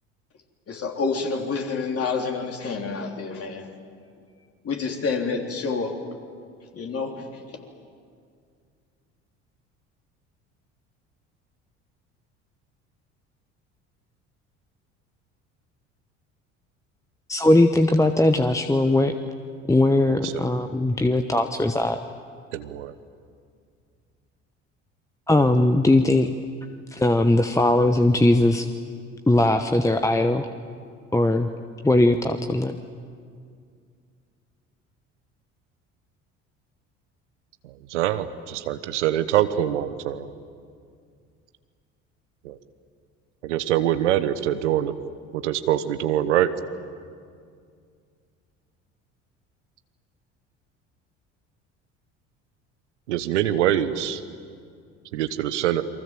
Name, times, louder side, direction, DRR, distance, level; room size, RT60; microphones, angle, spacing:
voice 1, 0.7-3.7 4.6-6.0 6.7-7.7, left 4 dB, 40° left, 2 dB, 3.8 m, -28 dB
voice 2, 17.3-19.1 19.7-22.0 25.3-26.3 26.9-28.7 29.3-30.5 31.1-31.5 31.8-32.8, left 1 dB, 10° left, 7 dB, 1.1 m, -19 dB
voice 3, 20.1-20.4 22.5-22.9 37.6-40.3 42.4-42.6 43.4-44.9 45.3-46.5 53.1-54.2 55.1-55.8, right 11 dB, 75° right, 11 dB, 1.2 m, -24 dB
29.0 x 23.5 x 7.7 m, 2.2 s
figure-of-eight pair, 60°, 36 cm